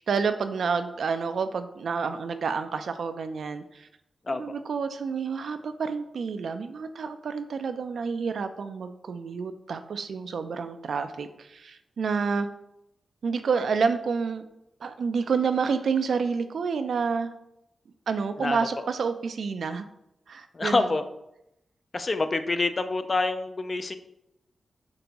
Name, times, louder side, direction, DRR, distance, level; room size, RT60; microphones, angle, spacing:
voice 1, 0.0-3.9 4.3-12.5 13.2-14.5 14.8-17.3 18.1-19.8 20.3-21.0, right 5 dB, 75° right, 9 dB, 0.3 m, -29 dB
voice 2, 20.5-21.0 21.9-24.0, left 3 dB, 40° left, 9 dB, 0.3 m, -26 dB
5.2 x 2.5 x 2.9 m, 0.84 s
cardioid pair, 80°, 0 cm